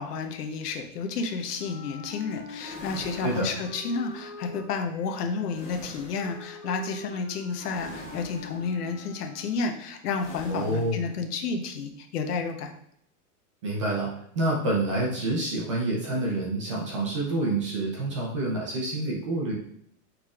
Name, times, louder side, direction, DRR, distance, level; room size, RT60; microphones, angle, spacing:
voice 1, 0.0-12.7, left 4 dB, 80° left, 5 dB, 0.9 m, -31 dB
Wind instrument woodwind instrument, 1.6-9.9, left 2 dB, 55° left, 1.6 m, -45 dB
sound 1, 2.6-4.2 5.5-6.4 7.7-8.7 10.2-11.1, left 1 dB, 30° left, 1.6 m, -45 dB
voice 2, 3.2-3.6 10.5-11.1 13.6-19.5, right 2 dB, 20° right, -3 dB, 0.4 m, -28 dB
6.2 x 3.3 x 2.4 m, 0.70 s
supercardioid pair, 170°, 46 cm